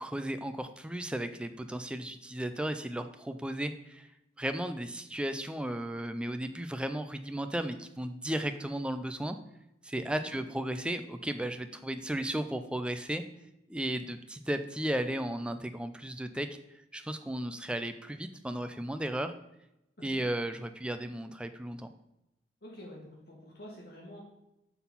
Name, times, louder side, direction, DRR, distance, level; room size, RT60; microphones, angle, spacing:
voice 1, 0.0-4.1 4.4-9.4 9.8-13.2 13.7-16.5 16.9-19.3 20.0-21.9, right 1 dB, 5° right, 8 dB, 0.3 m, -35 dB
voice 2, 22.6-24.2, left 1 dB, 60° left, -2 dB, 1.9 m, -48 dB
5.9 x 3.9 x 5.5 m, 0.88 s
head